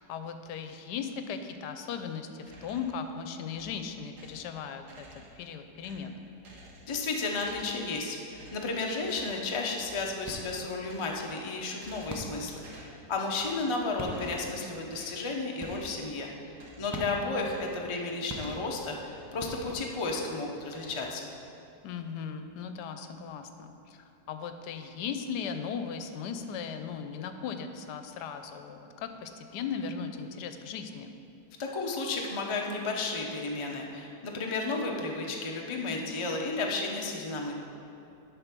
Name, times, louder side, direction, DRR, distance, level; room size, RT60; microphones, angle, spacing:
voice 1, 0.0-5.1 5.4-6.2 17.0-17.3 21.8-31.1, left 6 dB, 80° left, 8 dB, 1.2 m, -38 dB
sound 1, 2.4-3.0 3.5-4.5 4.8-5.5 5.8-7.1 7.3-7.9 8.3-8.7 9.0-9.4 9.8-10.2 10.7-11.4 11.7-12.3 12.6-13.0 13.4-13.8 14.1-14.5 14.9-15.2 15.6-15.9 16.5-17.0 17.4-19.4 19.7-20.3 20.6-21.5, right 1 dB, 75° right, 2.0 m, -53 dB
voice 2, 6.9-21.3 31.6-37.5, left 3 dB, 50° left, 0 dB, 0.3 m, -33 dB
sound 2, 10.2-10.7 12.1-12.6 13.6-13.7 14.0-14.6 15.6-16.1 16.9-17.5 18.3-19.0 19.4-20.1, right 1 dB, 20° right, 0.4 m, -41 dB
10.0 x 4.0 x 6.0 m, 2.7 s
omnidirectional pair, 1.8 m